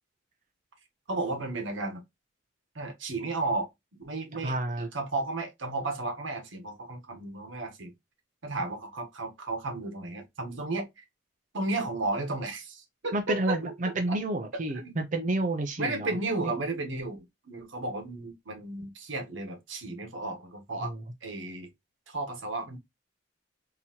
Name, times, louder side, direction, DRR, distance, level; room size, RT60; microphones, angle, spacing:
voice 1, 1.1-2.0 2.7-7.9 8.4-11.0 11.5-13.7 14.1-14.2 14.7-14.9 15.8-20.9 21.2-21.7 22.1-22.8, right 2 dB, 85° right, 1.1 m, -34 dB
voice 2, 4.3-4.9 13.1-16.1 16.4-16.5 20.8-21.0, right 2 dB, 40° right, 0.5 m, -30 dB
3.8 x 2.8 x 2.8 m
head